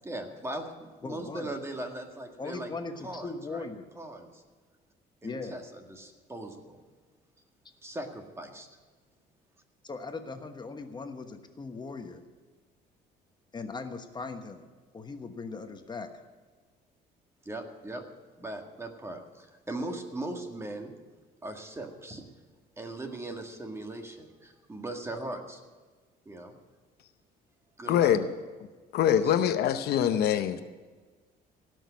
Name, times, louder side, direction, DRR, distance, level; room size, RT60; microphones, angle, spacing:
voice 1, 0.0-2.7 3.0-3.7 4.0-4.4 5.2-6.8 7.8-8.7 17.5-18.0 18.4-20.9 21.4-22.2 22.8-25.6 26.3-26.5 27.8-28.2 29.1-29.5, right 1 dB, 15° right, 4 dB, 1.8 m, -39 dB
voice 2, 1.0-1.6 2.4-3.9 5.2-5.6 9.8-12.2 13.5-14.7 14.9-16.1, left 3 dB, 25° left, 6 dB, 1.2 m, -39 dB
voice 3, 27.9-28.3 28.9-30.6, left 10 dB, 70° left, 10 dB, 0.8 m, -24 dB
17.0 x 6.4 x 9.4 m, 1.4 s
cardioid pair, 110°, 17 cm